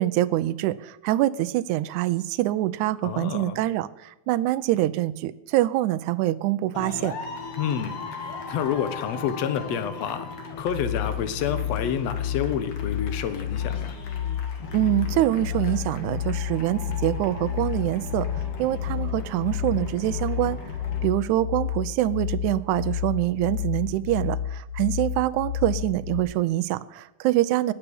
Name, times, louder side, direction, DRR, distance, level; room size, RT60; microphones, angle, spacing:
voice 1, 0.0-7.2 14.7-20.6 21.0-27.7, right 15 dB, 80° right, 13 dB, 1.9 m, -25 dB
voice 2, 3.0-3.6 7.6-10.3 10.6-14.0, left 8 dB, 60° left, 10 dB, 2.1 m, -29 dB
sound 1, 6.7-21.0, left 4 dB, 45° left, 2.5 m, -38 dB
sound 2, 10.6-26.2, left 9 dB, 25° left, 1.5 m, -31 dB
19.5 x 7.0 x 7.0 m, 0.94 s
omnidirectional pair, 3.6 m